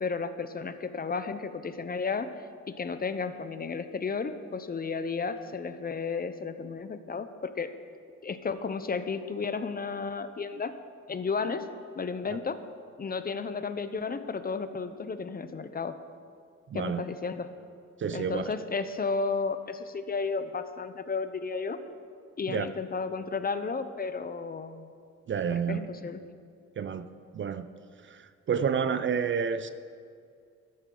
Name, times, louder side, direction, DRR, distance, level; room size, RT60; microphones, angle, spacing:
voice 1, 0.0-2.3 2.7-7.7 8.2-10.7 11.1-11.7 12.0-12.6 13.0-16.0 16.7-17.5 18.1-21.8 22.4-24.9 25.5-26.2, left 4 dB, 30° left, 11 dB, 0.7 m, -33 dB
voice 2, 16.7-17.0 18.0-18.4 22.5-22.7 25.3-25.8 26.8-27.1 27.3-27.7 28.1-28.2 28.5-29.7, right 7 dB, 40° right, 12 dB, 0.5 m, -29 dB
13.5 x 13.0 x 3.9 m, 2.3 s
cardioid pair, 90°, 30 cm